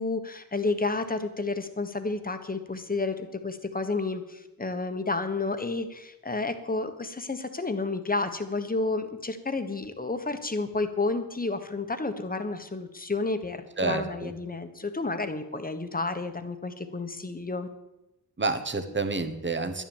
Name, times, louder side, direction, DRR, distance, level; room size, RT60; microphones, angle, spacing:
voice 1, 0.0-17.7, left 3 dB, 20° left, 9 dB, 1.3 m, -31 dB
voice 2, 13.8-14.3 18.4-19.8, right 3 dB, 30° right, 9 dB, 1.3 m, -29 dB
11.5 x 10.5 x 7.3 m, 0.95 s
wide cardioid pair, 110°, 39 cm